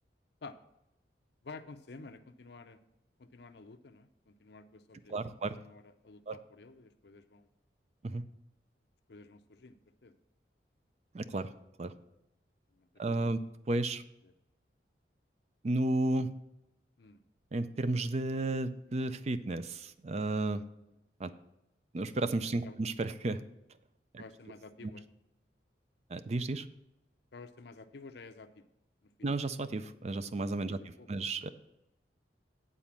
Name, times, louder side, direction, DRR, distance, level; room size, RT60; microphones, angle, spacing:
voice 1, 1.4-2.8 3.2-7.5 9.1-10.1 12.7-12.9 13.2-13.3 14.2-14.3 17.0-17.2 22.6-22.8 24.2-25.1 27.3-28.6 29.0-29.1 30.7-31.3, left 3 dB, 70° left, 9 dB, 0.6 m, -51 dB
voice 2, 5.1-5.5 6.3-6.4 8.0-8.2 11.1-11.5 11.8-11.9 13.0-13.4 13.7-14.0 15.6-16.3 17.5-20.6 21.2-21.3 21.9-23.4 24.1-24.2 26.1-26.7 29.2-31.5, right 2 dB, 35° right, 12 dB, 0.4 m, -33 dB
9.0 x 4.2 x 7.3 m, 0.87 s
head